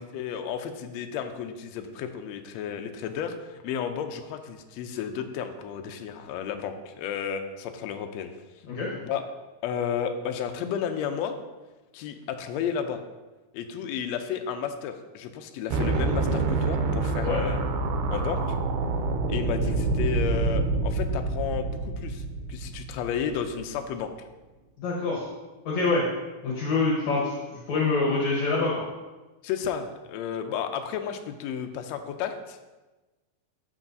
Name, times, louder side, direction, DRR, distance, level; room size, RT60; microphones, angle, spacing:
voice 1, 0.1-8.3 9.0-9.2 9.6-11.4 11.9-13.0 13.5-17.6 18.1-18.4 19.3-24.1 29.4-32.8, left 8 dB, 85° left, 6 dB, 1.5 m, -32 dB
sound 1, 15.7-23.8, right 3 dB, 80° right, 2.1 m, -27 dB
voice 2, 24.8-25.2 25.7-26.0 26.4-27.3 27.7-28.7, left 3 dB, 65° left, -4 dB, 2.3 m, -25 dB
13.0 x 4.6 x 2.7 m, 1.2 s
omnidirectional pair, 3.6 m